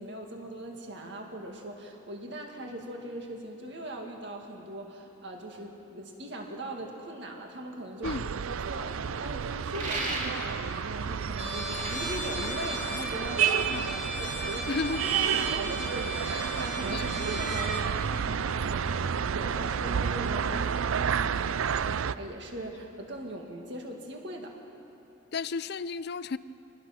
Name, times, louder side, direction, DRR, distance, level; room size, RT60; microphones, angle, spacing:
voice 1, 0.0-24.6, right 1 dB, 55° right, 2.1 m, -40 dB
sound 1, 8.0-22.1, right 7 dB, 80° right, 0.5 m, -30 dB
sound 2, 9.7-10.7 11.5-13.2, right 2 dB, 35° right, 2.7 m, -35 dB
Trumpet, 11.4-17.9, left 1 dB, 5° right, 2.5 m, -37 dB
voice 2, 14.7-15.0 16.9-17.0 25.3-26.4, left 4 dB, 50° left, 0.5 m, -32 dB
25.0 x 19.5 x 5.9 m
head